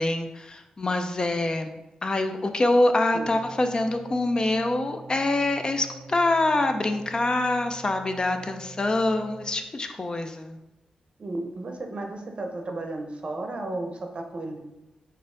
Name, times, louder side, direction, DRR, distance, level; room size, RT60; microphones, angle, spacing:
voice 1, 0.0-10.6, left 2 dB, 35° left, 6 dB, 0.4 m, -25 dB
voice 2, 3.1-3.5 11.2-14.6, right 2 dB, 50° right, 3 dB, 0.6 m, -34 dB
sound 1, 3.2-9.5, right 3 dB, 55° left, 1.3 m, -45 dB
4.2 x 2.6 x 3.7 m, 1.0 s
cardioid pair, 70°, 2 cm